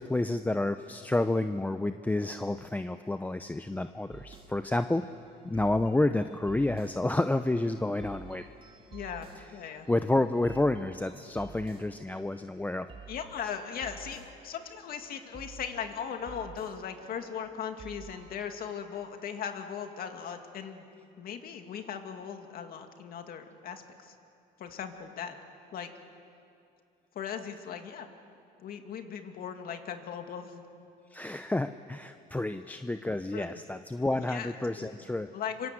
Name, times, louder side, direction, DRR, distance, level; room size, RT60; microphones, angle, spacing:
voice 1, 0.0-5.1 5.4-8.4 9.9-12.9 31.1-35.3, left 2 dB, 10° left, 9 dB, 0.7 m, -29 dB
sound 1, 4.1-18.4, right 5 dB, 30° right, 2.3 m, -51 dB
voice 2, 8.9-9.9 13.1-20.9 21.2-24.1 24.6-25.4 25.7-25.9 27.1-28.1 28.6-30.6 33.3-33.5 34.2-34.9 35.3-35.7, left 7 dB, 60° left, 6 dB, 2.4 m, -38 dB
26.5 x 25.0 x 7.9 m, 2.5 s
cardioid pair, 110°, 17 cm